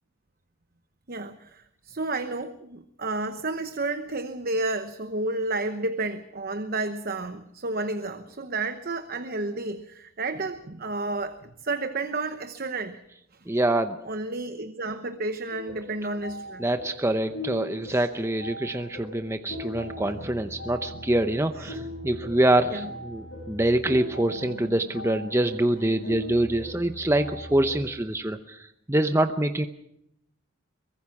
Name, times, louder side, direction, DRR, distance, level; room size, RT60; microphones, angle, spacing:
voice 1, 1.1-11.4 11.6-13.0 14.0-16.7 17.9-18.0 21.6-21.7 22.7-22.9, right 2 dB, 45° right, 9 dB, 1.0 m, -31 dB
voice 2, 13.5-14.0 16.6-29.7, right 1 dB, 10° right, 8 dB, 0.7 m, -25 dB
sound 1, 15.5-27.9, left 1 dB, 65° left, 7.6 m, -40 dB
23.5 x 20.5 x 5.9 m, 0.77 s
head